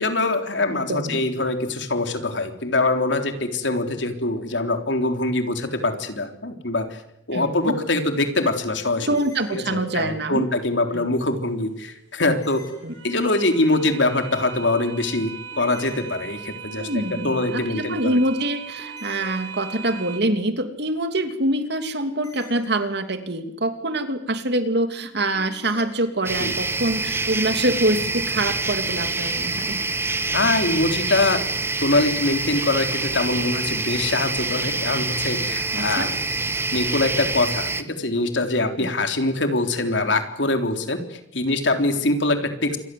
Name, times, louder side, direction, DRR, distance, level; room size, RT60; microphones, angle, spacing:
voice 1, 0.0-7.0 7.3-9.1 9.5-12.6 13.0-16.9 17.2-18.2 26.4-26.5 30.3-31.4 31.8-36.1 36.7-42.8, left 2 dB, 80° left, 6 dB, 3.7 m, -23 dB
voice 2, 0.7-1.2 7.3-7.8 9.1-10.5 10.9-11.1 12.8-12.9 16.7-29.8 35.7-36.1 38.8-38.9, right 1 dB, 65° right, 8 dB, 3.0 m, -25 dB
sound 1, 9.0-10.3 12.2-13.5 15.5-16.8 18.8-20.1 22.1-23.4 25.3-26.3, left 1 dB, 20° left, 6.9 m, -47 dB
sound 2, 11.2-20.2, right 8 dB, 85° right, 3.5 m, -39 dB
sound 3, 26.2-37.8, right 3 dB, 15° right, 1.3 m, -26 dB
27.5 x 23.5 x 7.9 m, 0.79 s
head